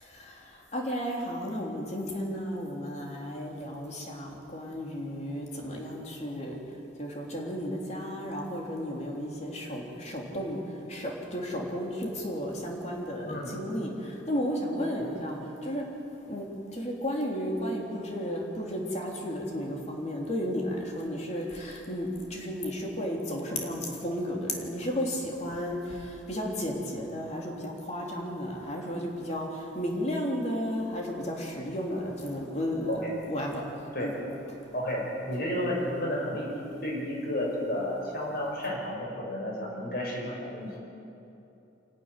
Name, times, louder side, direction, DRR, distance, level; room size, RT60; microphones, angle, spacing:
voice 1, 0.0-6.6 7.0-10.6 10.9-15.9 16.3-16.5 16.7-33.0 33.3-33.7 34.0-34.1, equal, 35° left, -1 dB, 3.5 m, -33 dB
voice 2, 34.7-40.7, left 1 dB, 55° left, -2 dB, 5.8 m, -32 dB
26.0 x 12.0 x 10.0 m, 2.8 s
head